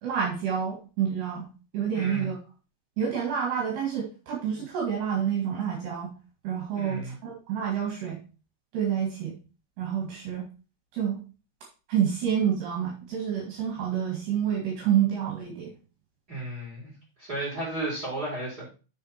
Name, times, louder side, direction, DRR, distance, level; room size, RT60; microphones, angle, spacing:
voice 1, 0.0-1.5 1.7-2.4 3.0-6.1 6.4-8.2 8.7-9.4 9.8-10.5 10.9-11.2 11.9-15.7, right 8 dB, 70° right, -1 dB, 3.9 m, -28 dB
voice 2, 1.9-2.3 6.7-7.2 16.3-16.9 17.2-18.7, right 2 dB, 20° right, -7 dB, 4.7 m, -33 dB
7.4 x 6.6 x 4.4 m, 0.34 s
omnidirectional pair, 5.2 m